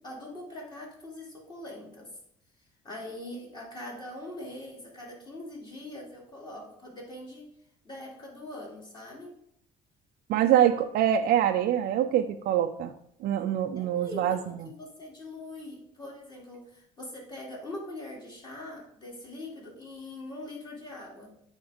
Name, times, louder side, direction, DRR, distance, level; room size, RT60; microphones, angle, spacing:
voice 1, 0.0-2.1 2.8-7.5 7.8-9.3 13.7-21.3, left 1 dB, 25° left, -3 dB, 2.8 m, -42 dB
voice 2, 10.3-12.9 13.2-14.4, right 10 dB, 65° right, 6 dB, 0.4 m, -24 dB
8.5 x 3.5 x 5.0 m, 0.72 s
cardioid pair, 110°, 17 cm